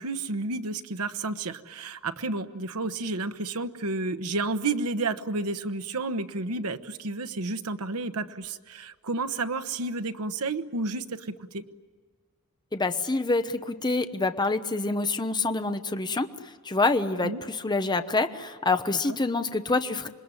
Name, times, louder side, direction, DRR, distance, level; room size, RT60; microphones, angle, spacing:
voice 1, 0.0-11.6 17.2-17.4 18.9-19.2, right 3 dB, 85° right, 9 dB, 1.1 m, -31 dB
voice 2, 12.7-20.1, left 3 dB, 20° left, 9 dB, 1.0 m, -27 dB
27.0 x 21.5 x 9.8 m, 1.5 s
head